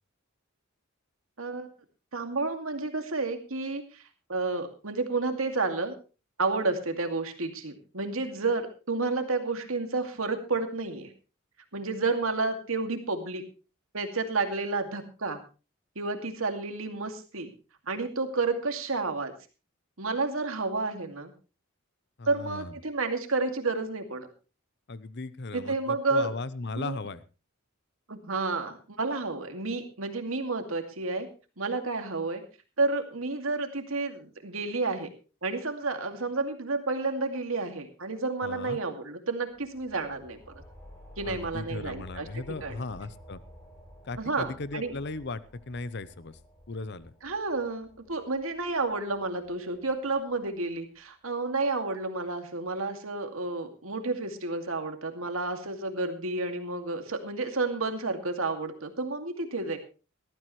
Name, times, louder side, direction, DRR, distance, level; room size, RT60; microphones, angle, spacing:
voice 1, 2.1-4.0 4.3-5.9 6.4-11.1 11.7-13.4 13.9-15.4 16.0-17.5 17.9-19.3 20.0-21.3 22.3-24.3 25.5-26.3 26.8-27.0 28.1-31.3 31.6-32.4 32.8-35.1 35.4-40.4 41.2-42.3 42.6-42.7 44.2-44.9 47.2-59.8, right 3 dB, 80° right, 6 dB, 2.4 m, -30 dB
voice 2, 22.2-22.8 24.9-27.2 38.4-38.8 41.2-43.4 44.0-46.4 46.7-47.1, left 3 dB, 55° left, 16 dB, 0.8 m, -37 dB
sound 1, 39.5-50.7, equal, 10° left, 6.2 m, -52 dB
18.5 x 13.5 x 3.2 m, 0.32 s
head